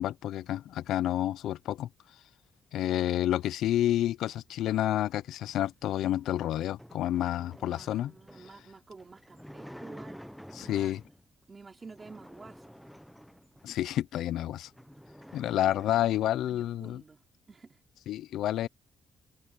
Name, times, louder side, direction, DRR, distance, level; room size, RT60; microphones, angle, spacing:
voice 1, 0.0-1.9 2.7-8.1 10.6-11.0 13.6-14.7 15.3-17.0 18.1-18.7, left 12 dB, 85° left, 0.4 m, -29 dB
sound 1, 6.1-11.2 11.8-13.9 14.3-14.4 14.6-16.5, equal, ahead, 0.7 m, -50 dB
voice 2, 7.7-10.2 10.5-10.9 11.5-13.0 16.2-17.8, right 4 dB, 25° right, 3.5 m, -51 dB
cardioid pair, 160°, 0 cm